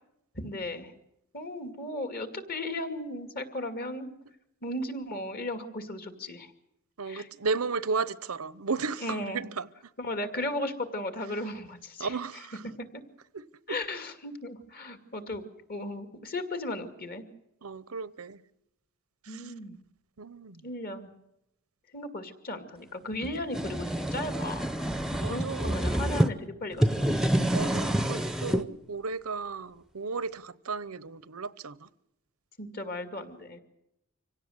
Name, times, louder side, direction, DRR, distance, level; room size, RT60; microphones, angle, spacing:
voice 1, 0.4-0.9 1.3-4.1 4.6-6.5 7.1-7.3 9.0-9.4 10.0-12.2 12.6-12.9 13.7-15.4 15.7-17.2 19.3-19.8 20.6-21.1 21.9-24.7 25.1-27.2 32.6-33.6, left 1 dB, 45° left, 2.4 m, -36 dB
voice 2, 7.0-9.7 12.0-12.6 13.3-13.8 17.6-18.4 19.2-19.5 20.2-20.6 25.2-25.8 27.5-31.9, right 4 dB, 85° right, 0.9 m, -34 dB
sound 1, 23.2-26.3 26.7-28.6, right 1 dB, ahead, 0.8 m, -27 dB
25.5 x 17.0 x 7.9 m
head